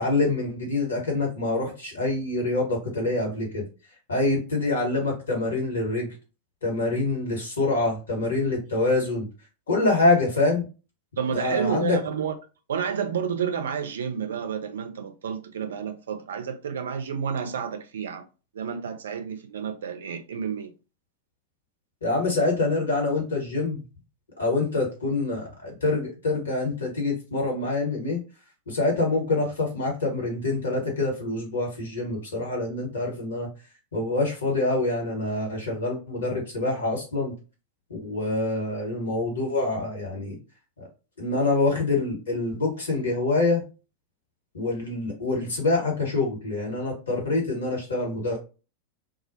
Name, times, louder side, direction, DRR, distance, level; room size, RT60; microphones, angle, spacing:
voice 1, 0.0-3.6 4.1-6.1 6.6-9.3 9.7-10.6 11.3-12.0 22.0-23.8 24.4-28.2 28.7-33.5 33.9-37.3 38.0-40.3 41.2-43.6 44.5-48.4, left 2 dB, 70° left, 1.1 m, -25 dB
voice 2, 11.2-12.3 12.7-18.2 18.5-20.7, right 7 dB, 65° right, 0.4 m, -30 dB
2.3 x 2.0 x 2.6 m
figure-of-eight pair, 90°, 0 cm